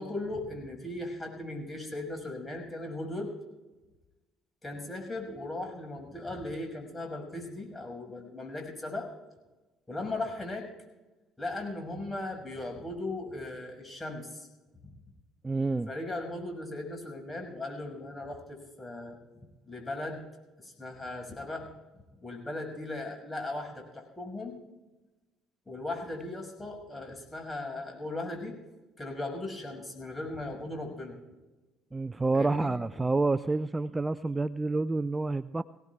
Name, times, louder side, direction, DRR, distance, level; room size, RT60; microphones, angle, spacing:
voice 1, 0.0-3.3 4.6-9.1 9.9-10.6 11.4-14.5 14.8-14.9 15.9-19.2 19.7-20.2 20.6-21.7 22.2-24.6 25.7-28.5 29.0-31.2 32.3-32.7, left 2 dB, 15° left, 2 dB, 6.1 m, -38 dB
voice 2, 15.4-15.9 31.9-35.6, right 3 dB, 20° right, 15 dB, 0.4 m, -28 dB
23.0 x 17.5 x 2.4 m, 1.1 s
hypercardioid pair, 60°, 0 cm